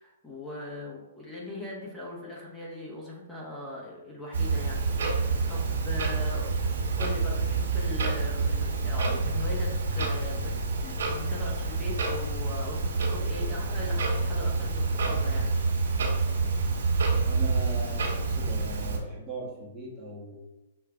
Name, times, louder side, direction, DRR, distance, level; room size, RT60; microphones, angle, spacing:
voice 1, 0.0-10.5 10.8-15.5, left 1 dB, 5° left, -5 dB, 1.0 m, -40 dB
Clock, 4.3-19.0, right 3 dB, 70° right, 1.2 m, -28 dB
voice 2, 17.3-20.4, right 1 dB, 15° right, -4 dB, 1.0 m, -39 dB
6.4 x 2.4 x 2.3 m, 1.0 s
hypercardioid pair, 130°, 0 cm